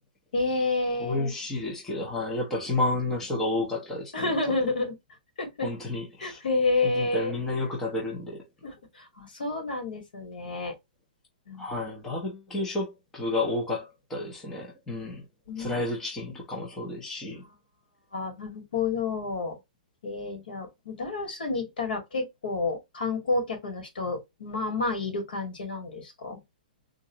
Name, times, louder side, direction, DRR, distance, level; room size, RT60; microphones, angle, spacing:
voice 1, 0.3-1.3 4.1-5.0 5.4-5.7 6.2-7.3 8.6-10.7 11.5-11.7 15.0-15.1 15.5-15.8 16.3-16.4 17.4-17.5 18.1-19.6 20.0-26.4, left 3 dB, 80° left, 2.2 m, -30 dB
voice 2, 1.0-4.5 5.6-6.4 6.8-8.4 11.6-15.2 15.6-17.4, left 2 dB, 5° left, 0.6 m, -31 dB
3.8 x 2.4 x 2.8 m
hypercardioid pair, 175°, 5 cm